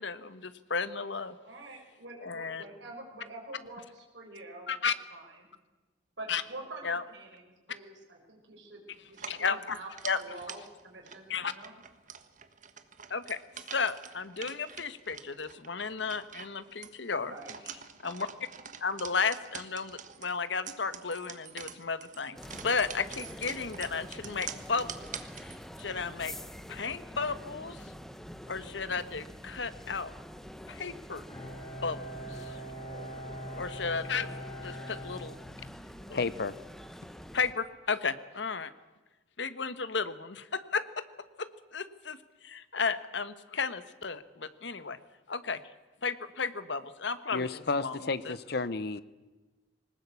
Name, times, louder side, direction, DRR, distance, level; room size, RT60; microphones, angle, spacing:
voice 1, 0.0-1.4 2.2-2.6 4.7-5.0 6.3-6.4 6.8-7.0 9.3-9.8 10.0-10.2 11.3-11.5 13.1-13.4 13.7-17.3 18.0-18.3 18.8-24.9 25.4-26.3 26.7-27.9 28.5-30.1 30.7-32.0 32.3-32.6 33.5-34.3 34.6-35.4 36.1-36.2 37.3-38.7 39.4-41.0 41.4-45.0 45.3-45.6 46.0-48.3, left 5 dB, 70° left, 13 dB, 1.2 m, -34 dB
voice 2, 1.4-4.7 5.1-5.5 6.2-11.7 17.1-17.5 32.9-33.1, right 2 dB, 75° right, 0 dB, 5.4 m, -47 dB
sound 1, 9.1-25.9, right 8 dB, 40° right, 1.4 m, -46 dB
sound 2, 22.4-37.5, equal, ahead, 1.0 m, -46 dB
Bowed string instrument, 31.3-36.1, equal, 25° left, 5.0 m, -42 dB
voice 3, 36.1-36.5 47.3-49.0, left 3 dB, 55° left, 16 dB, 0.7 m, -31 dB
20.5 x 19.0 x 8.4 m, 1.2 s
head